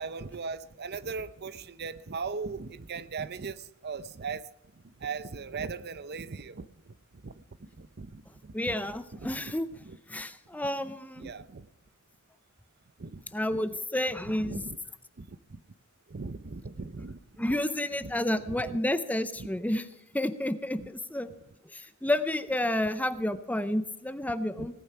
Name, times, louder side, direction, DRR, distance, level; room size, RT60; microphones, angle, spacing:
voice 1, 0.0-4.4 5.0-7.0 7.2-8.7 9.1-10.0 11.2-11.7 13.0-13.2 13.5-13.6 14.2-14.8 15.2-15.6 16.1-17.6 18.0-18.1 18.5-18.8 19.4-19.5 20.8-20.9 24.6-24.7, right 4 dB, 50° right, 15 dB, 0.6 m, -39 dB
voice 2, 8.5-9.7 10.1-11.3 13.3-14.7 17.4-19.8 20.1-21.3 21.6-24.8, left 1 dB, 10° left, 12 dB, 0.6 m, -30 dB
18.0 x 9.3 x 5.6 m, 0.84 s
head